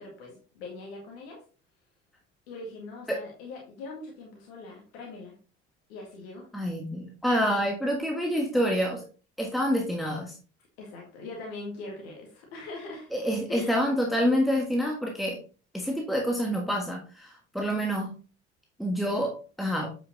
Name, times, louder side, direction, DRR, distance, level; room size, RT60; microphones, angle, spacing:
voice 1, 0.0-1.4 2.5-5.4 5.9-6.5 10.8-13.1 13.5-13.8, left 3 dB, 65° left, -1 dB, 2.0 m, -41 dB
voice 2, 6.5-9.0 9.4-10.4 13.1-15.4 15.7-18.2 18.8-19.9, equal, ahead, 0 dB, 1.4 m, -27 dB
8.3 x 5.7 x 3.0 m, 0.37 s
figure-of-eight pair, 60°, 34 cm